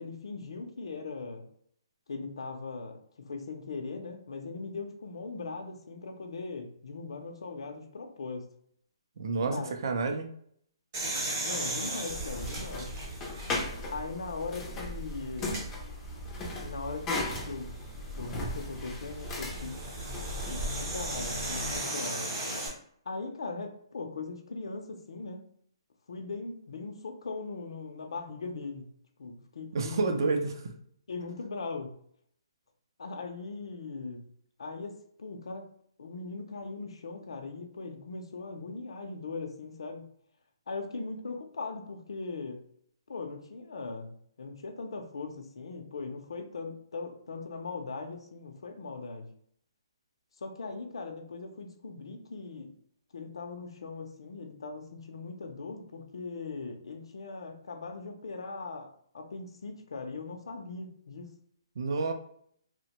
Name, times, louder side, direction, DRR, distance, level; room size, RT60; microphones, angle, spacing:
voice 1, 0.0-1.4 2.1-3.0 3.3-8.5 9.4-9.8 11.4-12.9 13.9-15.6 16.6-17.7 18.2-19.8 20.5-22.3 23.1-25.4 26.1-28.9 29.2-30.3 31.1-31.9 33.0-34.2 34.6-35.7 36.0-40.0 40.7-42.6 43.1-49.3 50.4-52.7 53.1-58.9 59.1-61.3, left 4 dB, 80° left, 4 dB, 0.5 m, -39 dB
voice 2, 9.2-10.3 29.7-30.5 61.8-62.1, right 4 dB, 50° right, 5 dB, 0.4 m, -29 dB
sound 1, 10.9-13.9 14.4-14.5 15.4-15.7 17.8-22.7, right 1 dB, 20° right, 0.8 m, -36 dB
sound 2, 12.1-21.8, left 1 dB, 15° left, 0.4 m, -37 dB
2.8 x 2.1 x 2.8 m, 0.65 s
hypercardioid pair, 170°, 3 cm